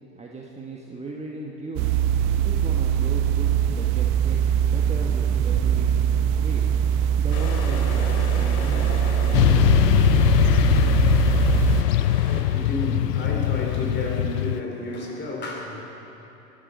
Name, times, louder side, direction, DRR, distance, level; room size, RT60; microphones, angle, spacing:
voice 1, 0.1-1.9 2.4-6.0 6.3-6.7 7.2-9.3, right 2 dB, 15° right, -1 dB, 1.3 m, -37 dB
sound 1, 1.8-11.8, right 9 dB, 40° right, 0.9 m, -22 dB
sound 2, 7.3-12.4, left 4 dB, 65° left, 2.4 m, -35 dB
Motorcycle / Traffic noise roadway noise, 9.3-14.6, left 13 dB, 80° left, 0.6 m, -21 dB
voice 2, 11.6-15.8, left 1 dB, 20° left, 0 dB, 3.8 m, -32 dB
22.0 x 12.0 x 5.4 m, 3.0 s
hypercardioid pair, 100°, 48 cm